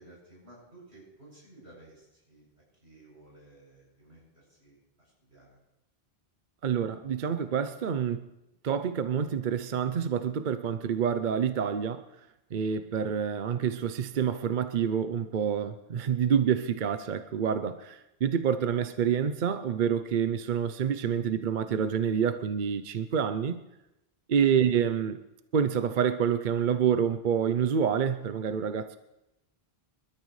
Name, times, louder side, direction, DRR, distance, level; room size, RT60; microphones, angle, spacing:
voice 1, 0.0-2.5 2.8-5.6 24.5-24.7, right 2 dB, 80° right, -4 dB, 8.1 m, -55 dB
voice 2, 6.6-8.3 8.6-12.0 12.5-23.6 24.3-25.2 25.5-29.0, right 7 dB, 55° right, 10 dB, 0.7 m, -27 dB
26.0 x 13.5 x 3.2 m, 0.93 s
omnidirectional pair, 1.1 m